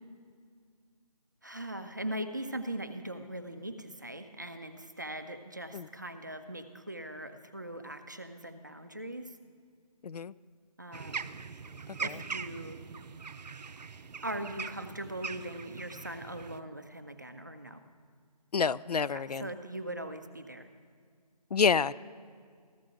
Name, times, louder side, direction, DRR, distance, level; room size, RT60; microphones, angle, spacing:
voice 1, 1.4-9.3 10.8-11.4 12.0-12.8 14.2-17.8 19.1-20.7, right 1 dB, 30° right, 9 dB, 0.5 m, -40 dB
voice 2, 10.0-10.3 12.0-12.2 18.5-19.5 21.5-21.9, left 6 dB, 70° left, 18 dB, 0.4 m, -28 dB
sound 1, 10.9-16.6, right 5 dB, 85° right, 0.6 m, -41 dB
15.0 x 13.0 x 3.8 m, 2.1 s
figure-of-eight pair, 175°, 21 cm